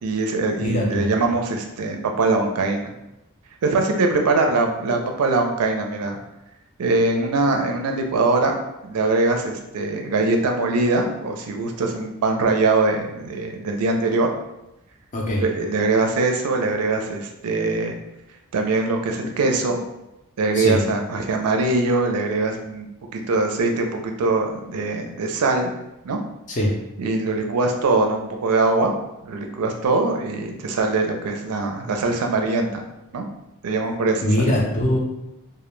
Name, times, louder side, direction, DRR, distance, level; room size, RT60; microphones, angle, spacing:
voice 1, 0.0-2.9 3.6-6.2 6.8-8.6 8.8-14.3 15.4-17.9 18.5-19.8 20.4-25.7 26.0-26.2 27.0-28.9 29.2-32.8 33.1-33.3 33.6-34.5, right 3 dB, 80° right, 3 dB, 0.4 m, -22 dB
voice 2, 0.6-1.1 15.1-15.4 20.5-20.8 26.5-26.7 34.2-35.0, left 1 dB, 35° left, -2 dB, 0.4 m, -21 dB
2.1 x 2.1 x 3.0 m, 0.89 s
head